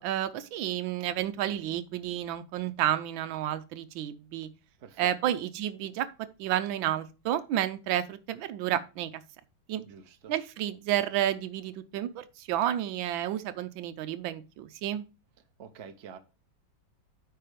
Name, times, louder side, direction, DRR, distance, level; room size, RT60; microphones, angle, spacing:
voice 1, 0.0-4.5 5.0-6.1 6.4-9.1 9.7-9.8 10.3-15.0, right 12 dB, 80° right, 1.4 m, -31 dB
voice 2, 4.8-5.4 9.8-10.3 15.6-16.2, right 7 dB, 50° right, 0.8 m, -47 dB
9.2 x 4.2 x 5.0 m
omnidirectional pair, 2.2 m